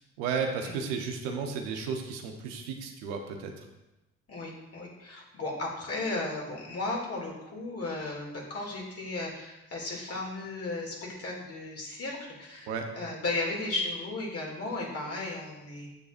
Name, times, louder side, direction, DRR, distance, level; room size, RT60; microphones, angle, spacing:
voice 1, 0.2-3.5 12.7-12.9, right 5 dB, 90° right, 3 dB, 0.9 m, -33 dB
voice 2, 4.3-12.7 13.0-15.9, left 2 dB, 45° left, -2 dB, 2.5 m, -35 dB
8.0 x 6.8 x 2.6 m, 0.99 s
hypercardioid pair, 55°, 32 cm